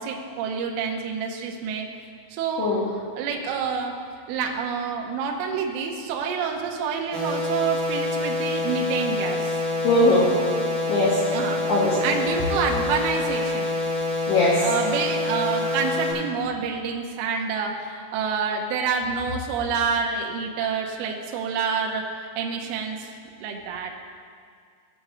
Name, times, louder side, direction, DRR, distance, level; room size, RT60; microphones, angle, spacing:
voice 1, 0.0-1.9 2.3-2.7 3.2-3.9 4.3-9.6 11.3-11.6 12.0-13.7 14.6-23.1 23.4-23.9, right 5 dB, 90° right, 1 dB, 2.2 m, -27 dB
voice 2, 2.6-2.9 9.8-10.3 10.9-11.2 11.7-12.0 14.3-14.7, left 2 dB, 80° left, -6 dB, 2.0 m, -20 dB
sound 1, 7.1-16.1, left 2 dB, 40° right, 2.7 m, -26 dB
17.0 x 6.5 x 3.1 m, 2.2 s
omnidirectional pair, 5.8 m